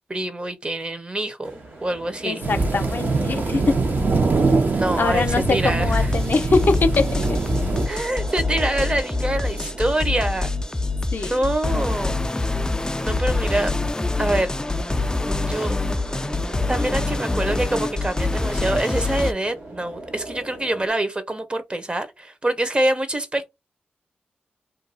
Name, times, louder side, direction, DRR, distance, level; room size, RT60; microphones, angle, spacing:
voice 1, 0.1-2.4 4.7-6.0 7.9-10.5 11.2-12.2 13.0-13.7 14.2-14.5 15.5-15.7 16.7-23.5, right 1 dB, 30° right, 0.8 m, -25 dB
sound 1, 1.4-20.9, right 2 dB, 75° right, 1.5 m, -39 dB
voice 2, 2.2-3.9 5.0-7.4 11.1-11.4, left 4 dB, 65° left, 0.6 m, -23 dB
sound 2, 2.4-7.9, right 3 dB, 60° right, 0.9 m, -23 dB
sound 3, 5.9-19.3, left 2 dB, 20° left, 0.4 m, -25 dB
2.6 x 2.3 x 4.0 m
cardioid pair, 55°, 4 cm